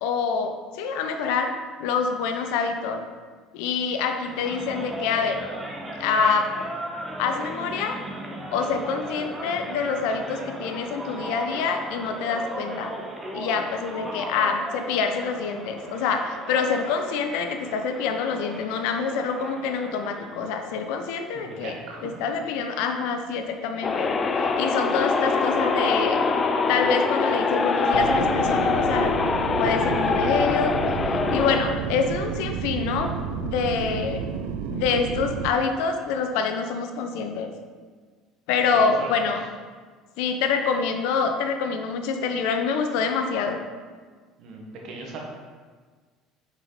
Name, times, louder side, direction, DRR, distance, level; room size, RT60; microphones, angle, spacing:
voice 1, 0.0-1.5 1.8-3.0 3.5-5.4 5.9-6.5 7.2-8.0 8.5-12.9 13.3-21.7 22.0-24.1 24.4-26.2 26.7-29.1 29.6-30.7 31.3-33.1 33.4-34.2 34.7-37.5 38.5-39.4 40.2-43.6, left 5 dB, 75° left, 5 dB, 0.7 m, -26 dB
sound 1, 4.2-20.4, right 1 dB, 15° right, 1.2 m, -36 dB
voice 2, 21.3-22.2 38.7-39.1 44.4-45.2, right 3 dB, 60° right, -1 dB, 1.5 m, -38 dB
sound 2, 23.8-31.6, left 4 dB, 35° left, 0.5 m, -23 dB
sound 3, 27.9-35.5, right 7 dB, 80° right, 0.4 m, -31 dB
6.2 x 5.1 x 4.1 m, 1.5 s
supercardioid pair, 90°, 0 cm